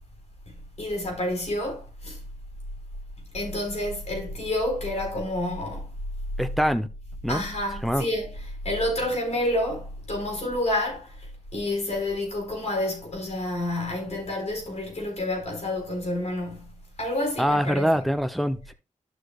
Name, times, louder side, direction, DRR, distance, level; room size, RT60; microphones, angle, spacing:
voice 1, 0.8-2.2 3.3-5.9 7.3-8.3 8.6-11.1 11.5-16.7 17.0-17.9, left 1 dB, 60° left, 4.5 m, -29 dB
voice 2, 6.4-6.9 7.2-7.4 7.8-8.0 17.4-18.7, equal, ahead, 0.8 m, -24 dB
11.5 x 6.4 x 2.4 m
cardioid pair, 65°, 13 cm